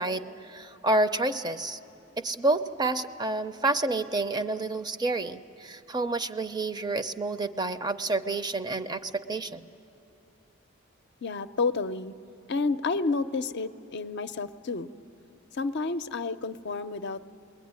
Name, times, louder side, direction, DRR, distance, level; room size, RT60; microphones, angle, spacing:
voice 1, 0.0-1.8 2.2-9.7, right 2 dB, 20° right, 10 dB, 0.5 m, -29 dB
voice 2, 11.2-12.1 12.5-14.9 15.5-17.2, left 3 dB, 55° left, 10 dB, 0.6 m, -30 dB
29.5 x 21.0 x 9.5 m, 2.9 s
head